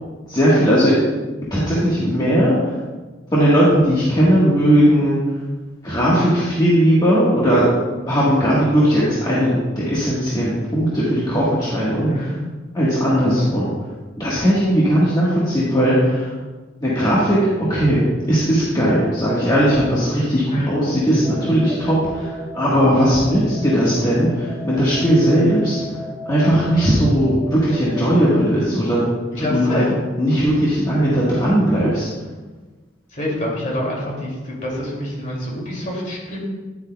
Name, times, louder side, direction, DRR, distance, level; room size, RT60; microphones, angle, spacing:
voice 1, 0.3-0.9 1.5-2.8 3.3-5.2 5.8-7.7 8.0-12.4 12.7-13.7 14.2-16.3 16.8-18.0 18.3-25.8 26.3-29.1 29.4-29.8 30.2-32.0, equal, 20° left, -8 dB, 1.3 m, -18 dB
voice 2, 12.0-12.4 20.5-20.7 29.3-29.9 33.1-36.4, left 1 dB, 45° left, -4 dB, 2.4 m, -26 dB
sound 1, 21.2-28.6, left 2 dB, 5° left, 1.6 m, -34 dB
9.9 x 8.0 x 2.2 m, 1.3 s
head